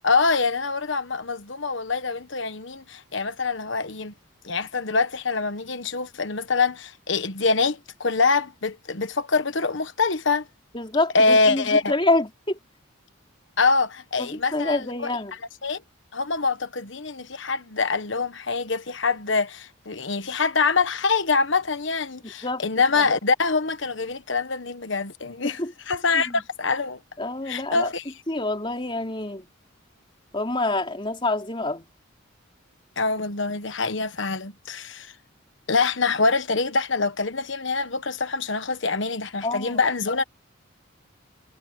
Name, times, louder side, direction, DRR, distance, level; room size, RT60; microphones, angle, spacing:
voice 1, 0.0-4.1 4.4-10.5 11.1-11.9 13.6-15.1 15.6-15.8 16.1-25.6 25.9-27.0 27.5-28.0 33.0-35.1 35.7-40.2, left 4 dB, 60° left, 1.3 m, -24 dB
voice 2, 10.7-12.6 14.2-15.4 22.2-22.6 22.9-23.1 25.4-25.7 26.1-26.4 27.2-27.9 28.3-29.5 30.3-31.9 39.4-39.8, left 2 dB, 25° left, 3.6 m, -27 dB
head